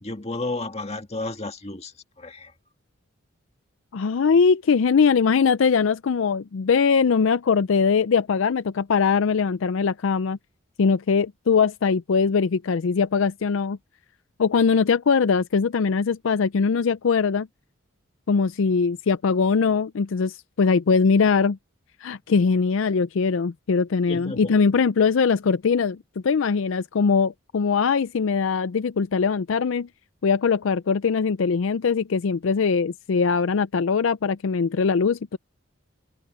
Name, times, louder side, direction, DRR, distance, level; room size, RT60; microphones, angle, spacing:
voice 1, 0.0-2.5 24.1-24.6, left 2 dB, 30° left, 1.9 m, -32 dB
voice 2, 3.9-10.4 10.8-13.8 14.4-17.5 18.3-21.6 22.0-26.0 26.2-29.9 30.2-35.4, left 5 dB, 70° left, 0.4 m, -21 dB
head